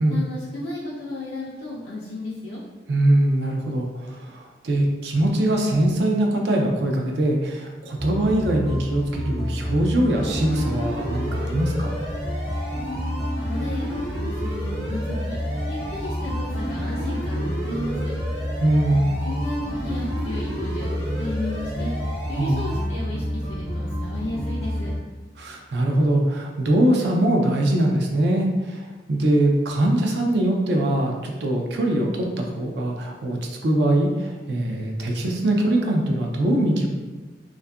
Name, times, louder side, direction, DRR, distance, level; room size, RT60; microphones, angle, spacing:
voice 1, 0.1-2.6 12.7-15.3 15.7-18.1 19.2-21.9 22.3-24.9, left 1 dB, 60° left, -7 dB, 0.4 m, -34 dB
voice 2, 2.9-11.9 18.6-19.1 22.4-22.7 25.4-36.9, right 1 dB, 65° right, 1 dB, 0.4 m, -22 dB
sound 1, 8.0-25.0, equal, ahead, 0.4 m, -29 dB
sound 2, 10.1-22.8, equal, 45° right, 0.8 m, -35 dB
2.6 x 2.3 x 2.3 m, 1.3 s
head